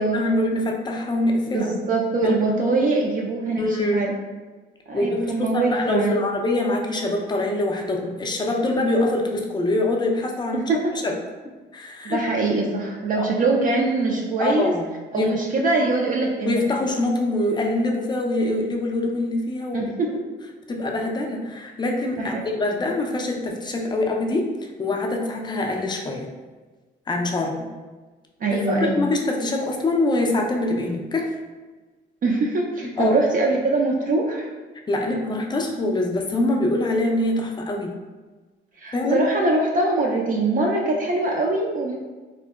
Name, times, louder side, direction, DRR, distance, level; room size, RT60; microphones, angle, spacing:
voice 1, 0.0-1.7 2.2-2.3 3.6-4.0 4.9-11.2 11.7-12.2 13.2-13.3 14.4-14.9 15.2-15.3 16.5-19.9 20.7-26.3 27.1-27.7 28.8-31.4 33.0-33.2 34.9-38.0 38.9-39.2, left 2 dB, 20° left, 1 dB, 0.4 m, -24 dB
voice 2, 1.5-4.1 4.9-6.2 10.5-10.9 12.0-14.7 15.1-16.6 19.7-20.1 22.2-22.4 28.4-29.0 32.2-34.5 38.8-41.9, right 2 dB, 45° right, -1 dB, 0.4 m, -23 dB
3.6 x 2.0 x 2.3 m, 1.3 s
cardioid pair, 90°, 20 cm